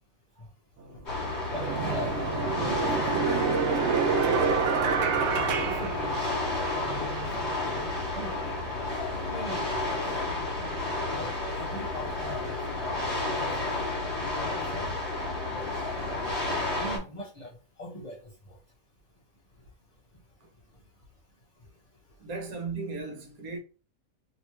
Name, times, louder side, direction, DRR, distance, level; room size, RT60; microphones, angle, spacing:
sound 1, 0.8-0.9 1.5-6.7, right 6 dB, 65° right, 0.7 m, -27 dB
sound 2, 1.1-17.0, left 2 dB, 50° left, 1.6 m, -31 dB
voice 1, 1.5-3.2 3.6-4.6 5.3-6.2 6.8-7.3 7.7-8.7 9.2-9.9 11.1-12.8 13.3-13.8 14.5-14.9 15.5-15.7 16.8-18.6, equal, 35° left, 0.9 m, -42 dB
voice 2, 22.2-23.6, right 4 dB, 80° right, 1.3 m, -36 dB
3.2 x 3.0 x 2.9 m
omnidirectional pair, 1.5 m